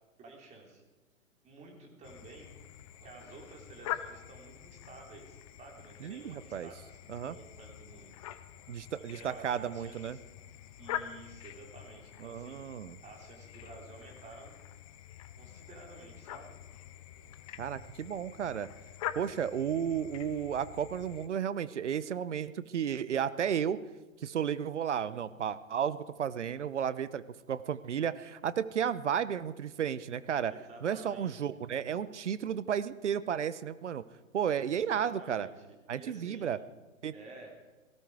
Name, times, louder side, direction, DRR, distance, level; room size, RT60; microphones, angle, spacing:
voice 1, 0.2-0.8 1.4-2.5 3.0-8.1 9.0-10.2 10.8-12.6 13.0-14.6 15.4-16.6 30.5-31.5 34.6-35.6 35.9-36.6 37.1-37.5, right 3 dB, 15° right, 1 dB, 3.5 m, -52 dB
sound 1, 2.0-21.3, left 11 dB, 25° left, 0.6 m, -45 dB
voice 2, 6.0-6.7 7.1-7.3 8.7-10.2 12.2-13.0 17.6-18.7 19.2-23.8 24.2-27.2 27.5-30.5 30.8-34.0 34.3-35.5 35.9-36.6 37.0-37.1, right 8 dB, 60° right, 16 dB, 0.9 m, -33 dB
18.0 x 15.5 x 4.8 m, 1.2 s
figure-of-eight pair, 125°, 40 cm